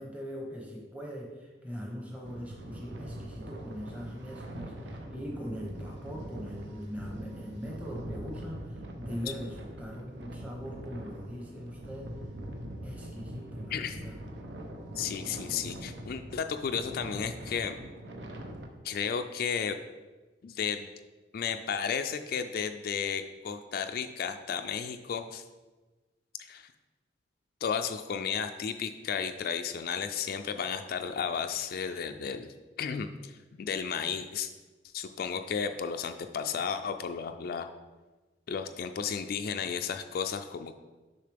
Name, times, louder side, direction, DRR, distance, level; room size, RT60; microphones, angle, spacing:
voice 1, 0.0-1.3 1.6-12.1 12.8-14.1, equal, 10° right, -1 dB, 0.8 m, -41 dB
sound 1, 2.2-18.7, right 1 dB, 75° right, 0.8 m, -43 dB
voice 2, 15.0-17.7 18.8-19.8 20.4-20.9 21.3-25.4 26.4-26.7 27.6-32.5 32.8-34.5 34.9-37.7 38.5-40.8, left 7 dB, 55° left, 7 dB, 0.3 m, -33 dB
6.6 x 5.6 x 3.4 m, 1.2 s
head